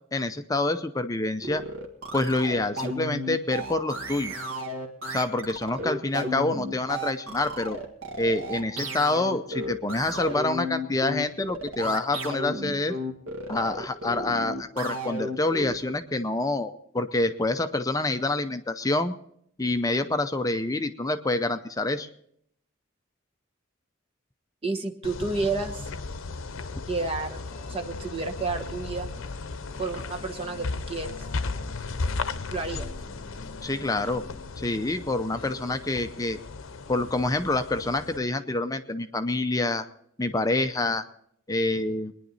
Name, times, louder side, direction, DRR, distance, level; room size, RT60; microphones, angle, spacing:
voice 1, 0.1-1.6 2.1-4.3 5.1-7.8 8.2-13.0 13.5-19.1 19.6-22.1 33.6-34.2 34.6-36.4 36.9-39.9 40.2-41.0 41.5-42.1, left 2 dB, 15° left, 8 dB, 0.6 m, -27 dB
sound 1, 1.4-15.9, equal, 80° right, 1.9 m, -33 dB
voice 2, 24.6-25.8 26.9-27.4 27.7-29.1 29.8-31.2 32.5-32.9, right 3 dB, 30° right, 4 dB, 1.1 m, -30 dB
sound 2, 25.0-38.2, left 3 dB, 80° left, 0.7 m, -36 dB
sound 3, 27.5-35.8, left 2 dB, 35° left, 2.2 m, -49 dB
22.5 x 10.5 x 4.1 m, 0.68 s
head